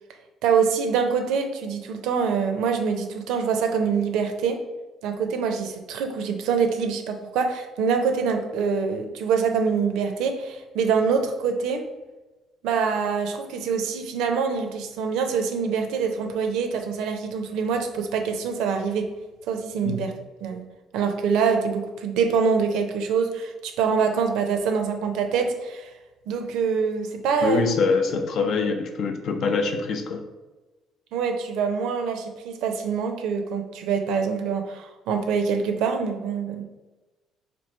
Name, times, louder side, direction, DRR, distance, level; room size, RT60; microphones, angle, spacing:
voice 1, 0.4-4.6 5.0-11.8 12.6-19.1 19.5-20.1 20.4-20.6 20.9-25.9 26.3-27.7 28.4-28.5 31.1-36.6, right 6 dB, 80° right, 5 dB, 0.5 m, -25 dB
voice 2, 27.4-30.2, left 4 dB, 60° left, 6 dB, 0.5 m, -24 dB
3.0 x 2.6 x 4.4 m, 1.1 s
cardioid pair, 85°, 0 cm